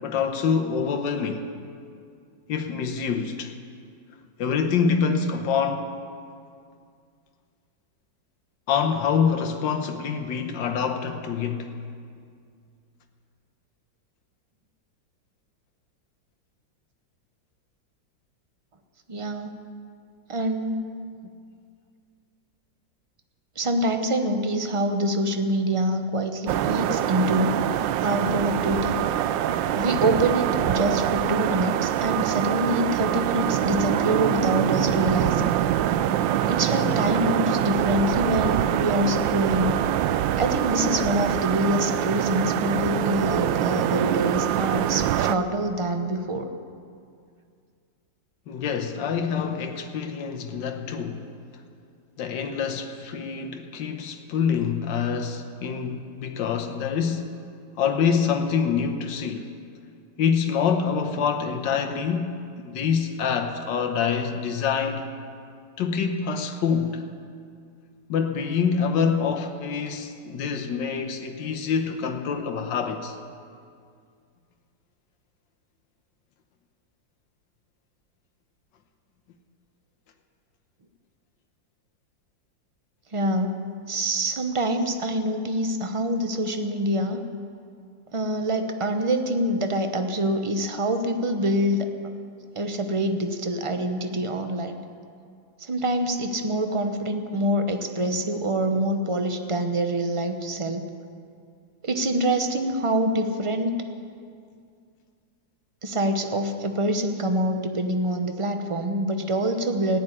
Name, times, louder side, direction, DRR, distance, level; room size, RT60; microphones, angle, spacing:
voice 1, 0.0-1.5 2.5-3.5 4.4-5.9 8.7-11.7 48.5-51.3 52.2-57.3 57.8-59.5 60.2-65.1 65.8-67.0 68.1-73.2, left 6 dB, 80° left, 1.6 m, -26 dB
voice 2, 19.1-19.6 20.3-20.9 23.6-27.6 28.0-29.0 29.7-35.4 36.4-39.8 40.4-46.5 83.1-83.6 83.9-87.2 88.1-91.9 92.5-94.8 95.6-100.9 101.8-103.7 105.8-110.0, right 1 dB, 35° right, 0.5 m, -25 dB
sound 1, 26.5-45.4, right 11 dB, 90° right, 1.3 m, -24 dB
15.0 x 8.8 x 9.9 m
omnidirectional pair, 2.0 m